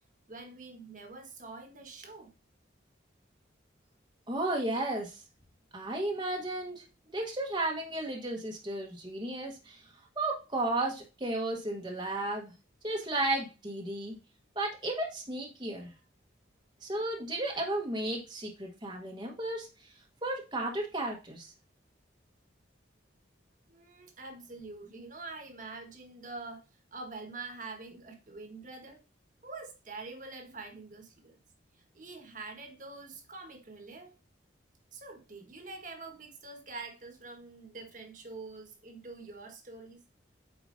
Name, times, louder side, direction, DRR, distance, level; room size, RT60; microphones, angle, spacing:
voice 1, 0.3-2.3 23.7-26.7 26.9-29.0 29.4-31.4 31.9-34.1 34.9-40.0, right 3 dB, 40° right, 1.5 m, -45 dB
voice 2, 4.3-5.2 5.7-9.8 10.2-12.5 12.8-14.1 14.5-15.9 16.8-19.9 20.2-21.5, right 2 dB, 25° right, 1.2 m, -34 dB
8.3 x 5.0 x 2.6 m
head